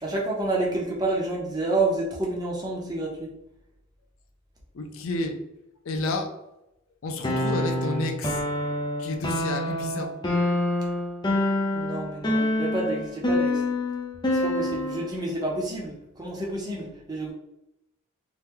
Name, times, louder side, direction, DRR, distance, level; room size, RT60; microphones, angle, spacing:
voice 1, 0.0-3.3 11.7-13.6 14.3-17.3, right 2 dB, 20° right, -3 dB, 0.7 m, -29 dB
voice 2, 4.7-5.4 5.8-6.4 7.0-8.4 9.0-10.1, left 2 dB, 80° left, 5 dB, 0.5 m, -30 dB
sound 1, 7.2-15.1, left 1 dB, 20° left, 0.4 m, -26 dB
2.9 x 2.2 x 3.5 m, 0.86 s
head